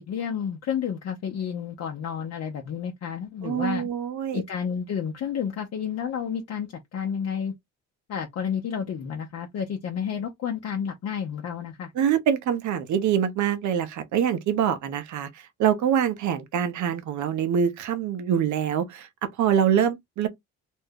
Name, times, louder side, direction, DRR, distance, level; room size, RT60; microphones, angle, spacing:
voice 1, 0.0-3.9 4.3-7.5 8.1-11.9, left 7 dB, 55° left, 0.6 m, -31 dB
voice 2, 3.4-4.4 12.0-20.3, right 8 dB, 70° right, 0.7 m, -25 dB
2.5 x 2.2 x 3.5 m
cardioid pair, 90°, 30 cm